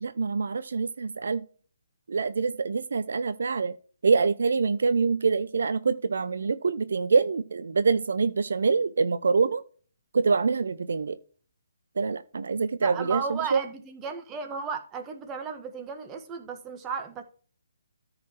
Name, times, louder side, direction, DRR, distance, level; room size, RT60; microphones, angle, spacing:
voice 1, 0.0-1.4 2.1-3.7 4.0-9.6 10.1-11.2 12.0-13.6, right 4 dB, 65° right, 0.6 m, -25 dB
voice 2, 12.8-17.2, right 5 dB, 15° right, 1.5 m, -34 dB
13.5 x 4.9 x 4.6 m
figure-of-eight pair, 140°, 0 cm